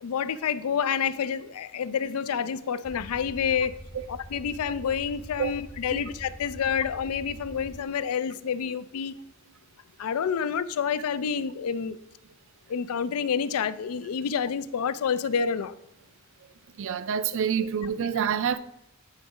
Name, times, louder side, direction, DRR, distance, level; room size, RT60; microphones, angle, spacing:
voice 1, 0.0-3.8 4.1-9.1 10.0-12.0 12.7-15.8, left 7 dB, 80° left, 0.4 m, -28 dB
sound 1, 2.8-7.8, equal, 20° left, 0.6 m, -44 dB
voice 2, 16.8-18.6, right 7 dB, 60° right, 0.4 m, -27 dB
9.0 x 3.8 x 4.9 m
head